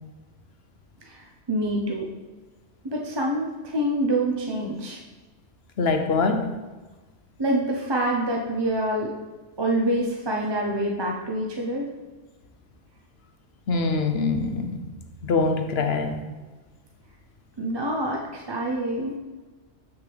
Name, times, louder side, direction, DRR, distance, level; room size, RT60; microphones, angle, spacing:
voice 1, 1.1-2.1 2.8-5.0 7.4-9.1 9.6-11.9 17.6-19.2, right 1 dB, 25° right, -1 dB, 0.6 m, -26 dB
voice 2, 5.8-6.5 13.7-14.8 15.2-16.2, left 4 dB, 60° left, 5 dB, 0.9 m, -24 dB
7.3 x 6.4 x 3.4 m, 1.3 s
omnidirectional pair, 1.2 m